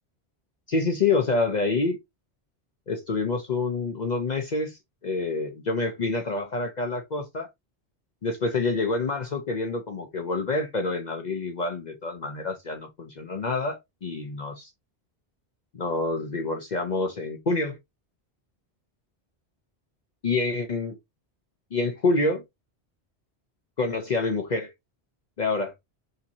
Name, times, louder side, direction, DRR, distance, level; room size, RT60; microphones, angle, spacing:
voice 1, 0.7-2.0 2.9-7.5 8.2-14.7 15.7-17.8 20.2-21.0 21.7-22.4 23.8-24.7 25.4-25.7, left 3 dB, 45° left, 0.7 m, -27 dB
5.6 x 2.9 x 2.6 m
omnidirectional pair, 1.1 m